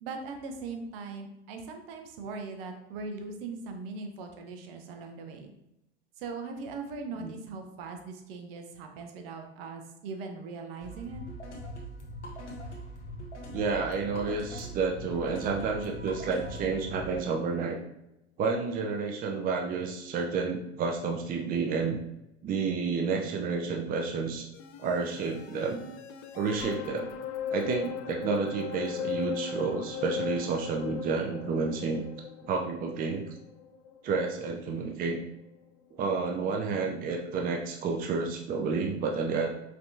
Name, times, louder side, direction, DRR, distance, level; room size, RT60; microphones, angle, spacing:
voice 1, 0.0-5.5 6.2-11.2, right 4 dB, 55° right, 4 dB, 0.8 m, -40 dB
sound 1, 10.8-17.2, equal, 90° left, 1.1 m, -41 dB
voice 2, 13.5-17.8 18.4-22.0 22.4-24.5 24.8-25.8 26.4-27.1 27.5-32.0 32.4-33.2 34.0-35.2 36.0-39.5, right 4 dB, 25° right, 2 dB, 0.6 m, -30 dB
sound 2, 24.5-34.9 35.3-35.4, left 7 dB, 45° left, 0.6 m, -38 dB
5.2 x 3.4 x 2.7 m, 0.87 s
hypercardioid pair, 85°, 34 cm